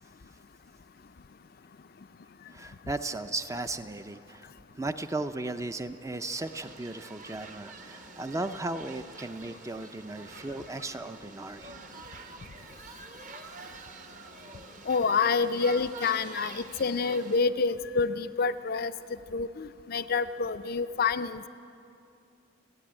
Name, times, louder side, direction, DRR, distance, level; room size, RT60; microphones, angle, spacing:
voice 1, 2.5-4.5 4.7-11.7, right 2 dB, 15° right, 9 dB, 0.4 m, -36 dB
sound 1, 6.4-17.4, right 4 dB, 35° right, 0.9 m, -47 dB
voice 2, 14.9-21.5, left 4 dB, 45° left, 11 dB, 0.4 m, -28 dB
30.0 x 10.0 x 8.8 m, 2.7 s
head